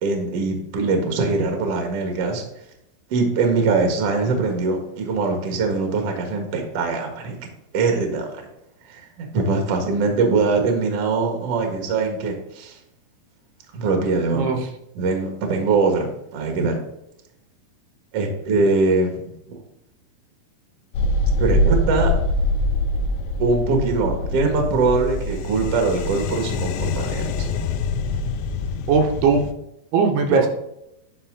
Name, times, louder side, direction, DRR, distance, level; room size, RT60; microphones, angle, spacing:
voice 1, 0.0-2.4 3.1-7.4 7.7-8.3 8.9-12.7 13.7-14.5 15.0-16.8 18.1-19.6 21.4-22.1 23.4-27.2 30.2-30.5, right 3 dB, 50° right, 3 dB, 2.1 m, -22 dB
sound 1, 20.9-29.5, left 2 dB, 80° left, 2.7 m, -24 dB
voice 2, 28.9-29.5 29.9-30.5, right 5 dB, 80° right, 3 dB, 3.1 m, -18 dB
10.5 x 5.6 x 3.8 m, 0.82 s
omnidirectional pair, 4.6 m